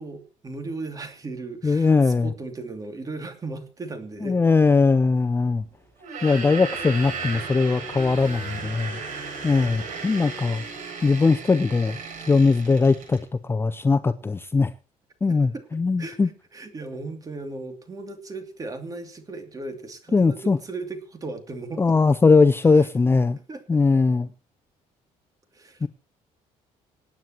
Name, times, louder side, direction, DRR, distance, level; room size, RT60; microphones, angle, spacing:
voice 1, 0.0-4.4 6.1-6.3 15.3-15.7 16.0-22.0 22.7-22.9 23.5-23.8 25.5-25.9, right 3 dB, 25° right, 2.6 m, -37 dB
voice 2, 1.6-2.3 4.2-5.6 6.2-9.0 9.4-10.6 11.0-12.0 12.3-14.7 15.2-16.3 20.1-20.6 21.8-23.4 23.7-24.3 25.8-25.9, left 4 dB, 15° left, 0.5 m, -20 dB
Open or close the door(Old Door), 6.0-13.2, right 4 dB, 70° right, 7.9 m, -35 dB
26.0 x 9.2 x 2.9 m
cardioid pair, 120°, 14 cm